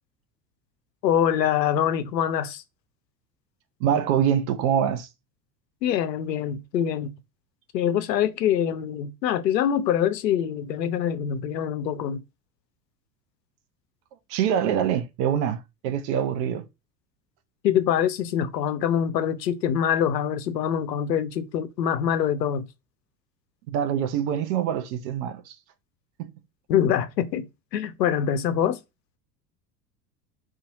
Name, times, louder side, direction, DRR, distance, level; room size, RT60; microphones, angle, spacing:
voice 1, 1.0-2.6 5.8-7.1 7.7-12.2 17.6-22.7 26.7-28.8, left 9 dB, 80° left, 0.5 m, -24 dB
voice 2, 3.8-5.1 14.3-16.6 23.7-25.6 26.2-26.3, right 9 dB, 45° right, 0.5 m, -25 dB
2.7 x 2.4 x 2.5 m
figure-of-eight pair, 75°, 50 cm